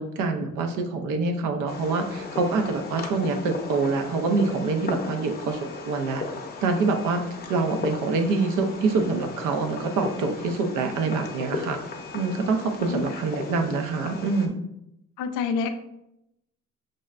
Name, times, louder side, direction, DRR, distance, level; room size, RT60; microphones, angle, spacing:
voice 1, 0.0-6.2 6.6-7.2 7.5-11.8 12.1-14.6, right 3 dB, 85° right, 5 dB, 0.6 m, -25 dB
Fireworks, 1.7-14.5, left 4 dB, 30° left, 0.6 m, -36 dB
voice 2, 15.2-15.7, left 5 dB, 90° left, 7 dB, 0.5 m, -27 dB
6.2 x 2.1 x 2.4 m, 0.83 s
cardioid pair, 90°, 30 cm